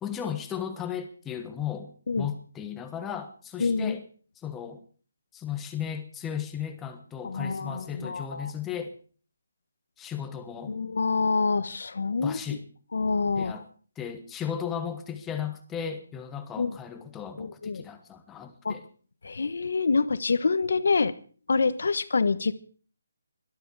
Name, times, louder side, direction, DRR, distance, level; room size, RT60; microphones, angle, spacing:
voice 1, 0.0-1.9 2.2-4.0 4.4-4.8 5.3-9.0 10.0-10.7 12.2-12.6 13.4-13.6 14.0-18.8, left 8 dB, 10° left, 7 dB, 1.3 m, -35 dB
voice 2, 3.6-4.0 7.2-8.5 10.6-12.4 12.9-13.6 16.6-16.8 17.4-17.8 18.6-18.8 19.2-21.1 21.5-22.5, left 4 dB, 70° left, 14 dB, 1.2 m, -26 dB
18.0 x 13.0 x 4.8 m, 0.42 s
hypercardioid pair, 165°, 0 cm